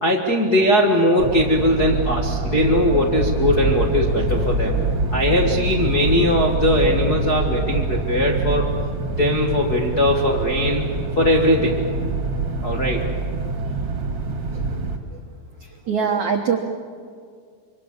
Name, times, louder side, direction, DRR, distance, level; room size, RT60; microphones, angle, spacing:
voice 1, 0.0-4.8 5.1-8.7 9.2-10.9 11.2-11.8 12.6-13.0, left 1 dB, 70° left, 0 dB, 0.9 m, -20 dB
sound 1, 1.2-15.0, right 3 dB, 40° right, 1.8 m, -25 dB
voice 2, 15.6-16.6, right 6 dB, 75° right, 3 dB, 1.7 m, -23 dB
26.5 x 24.5 x 7.2 m, 2.1 s
omnidirectional pair, 5.2 m